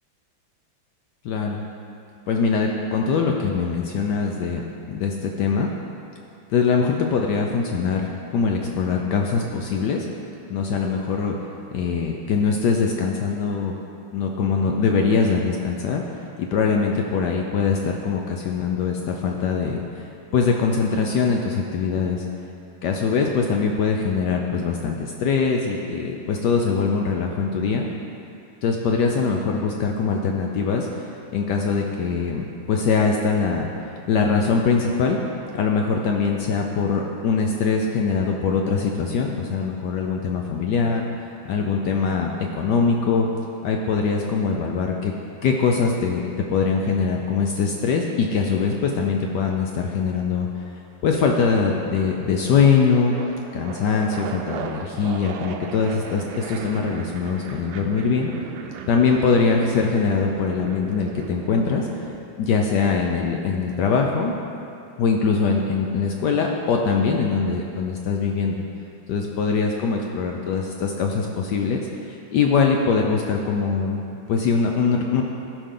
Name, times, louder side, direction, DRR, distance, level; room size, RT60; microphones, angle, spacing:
voice 1, 1.2-1.6 2.3-5.7 6.5-10.1 10.5-11.3 11.7-13.7 14.1-16.0 16.4-22.2 22.8-27.9 28.6-31.1 31.3-35.2 35.5-41.1 41.5-43.3 43.6-45.1 45.4-50.5 51.0-53.2 53.5-58.3 58.9-61.9 62.4-64.3 65.0-68.6 69.1-74.0 74.3-75.2, left 5 dB, 70° left, 1 dB, 1.0 m, -22 dB
sound 1, 45.2-45.4 47.3-48.5 49.5-49.9 50.3-62.2, right 6 dB, 80° right, 1.3 m, -38 dB
14.5 x 5.1 x 3.8 m, 2.7 s
omnidirectional pair, 2.2 m